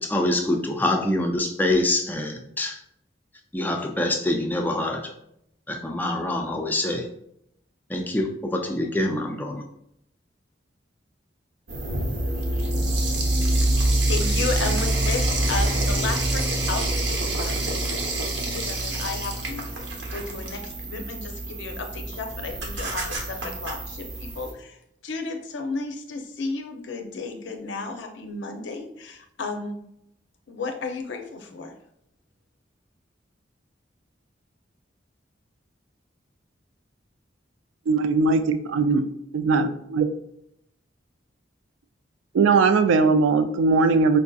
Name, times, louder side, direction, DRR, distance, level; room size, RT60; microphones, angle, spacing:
voice 1, 0.0-2.8 3.5-5.1 5.7-7.1 7.9-9.6, left 1 dB, 10° left, 3 dB, 0.3 m, -25 dB
sound 1, 11.7-24.5, right 1 dB, 70° right, 0.8 m, -26 dB
voice 2, 14.1-29.8 30.5-31.8, left 3 dB, 75° left, 5 dB, 0.5 m, -33 dB
voice 3, 37.9-39.1 39.3-40.1 42.3-44.2, right 4 dB, 90° right, 9 dB, 0.3 m, -20 dB
4.6 x 2.6 x 2.3 m, 0.77 s
head